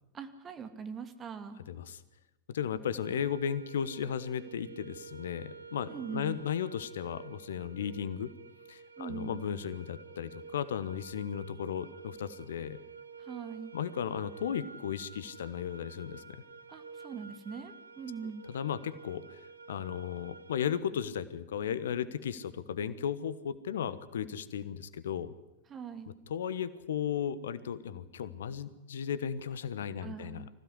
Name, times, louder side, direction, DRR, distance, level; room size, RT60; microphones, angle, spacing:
voice 1, 0.1-1.6 5.9-6.4 9.0-9.5 13.2-13.7 16.7-18.5 25.7-26.1 30.0-30.5, right 6 dB, 25° right, 7 dB, 2.6 m, -42 dB
voice 2, 1.7-2.0 2.5-8.3 8.7-12.8 13.7-16.4 18.2-25.3 26.3-30.5, left 8 dB, 60° left, 16 dB, 1.2 m, -35 dB
sound 1, 3.0-20.8, right 5 dB, 75° right, 1.3 m, -50 dB
25.5 x 16.0 x 9.9 m, 0.96 s
figure-of-eight pair, 90°, 0 cm